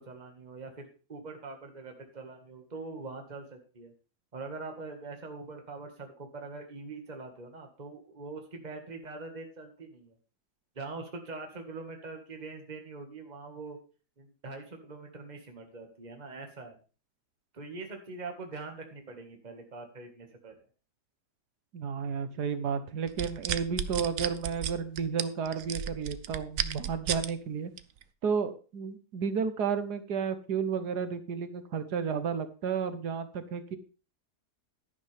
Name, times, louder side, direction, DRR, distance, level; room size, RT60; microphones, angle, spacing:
voice 1, 0.0-3.9 4.3-10.2 10.8-13.8 14.2-16.8 17.5-20.6, right 3 dB, 25° right, 4 dB, 1.8 m, -43 dB
voice 2, 21.7-27.7 28.2-33.8, right 6 dB, 85° right, 11 dB, 1.7 m, -32 dB
sound 1, 23.1-27.3 27.8-28.0, right 10 dB, 60° right, 1.0 m, -33 dB
11.0 x 10.5 x 3.5 m, 0.36 s
omnidirectional pair, 1.7 m